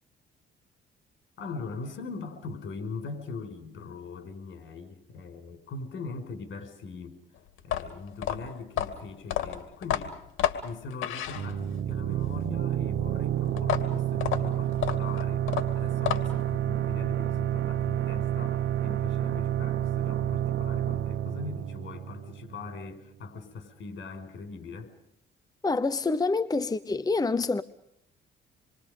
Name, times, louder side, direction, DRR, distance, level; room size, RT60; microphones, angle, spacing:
voice 1, 1.4-7.2 7.6-10.2 10.6-15.5 15.7-24.9, left 4 dB, 70° left, 5.4 m, -41 dB
sound 1, 7.6-11.9 13.6-16.5, left 11 dB, 85° left, 2.4 m, -31 dB
sound 2, 11.4-22.8, right 11 dB, 70° right, 1.2 m, -29 dB
voice 2, 25.6-27.6, left 3 dB, 20° left, 0.8 m, -26 dB
27.5 x 23.5 x 5.3 m
cardioid pair, 90°, 20 cm